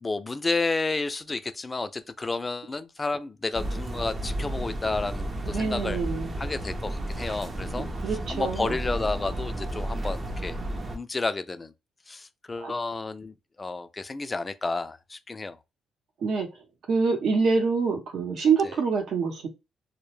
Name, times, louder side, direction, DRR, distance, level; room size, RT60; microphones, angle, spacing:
voice 1, 0.0-6.0 6.4-7.9 8.3-10.6 10.9-11.7 12.1-15.6, left 3 dB, 25° left, 0.3 m, -31 dB
sound 1, 3.5-11.0, right 1 dB, 35° right, 0.5 m, -32 dB
voice 2, 5.5-6.3 7.7-8.8 12.6-12.7 16.2-19.5, right 5 dB, 70° right, 0.8 m, -26 dB
2.1 x 2.0 x 3.1 m
cardioid pair, 90°, 0 cm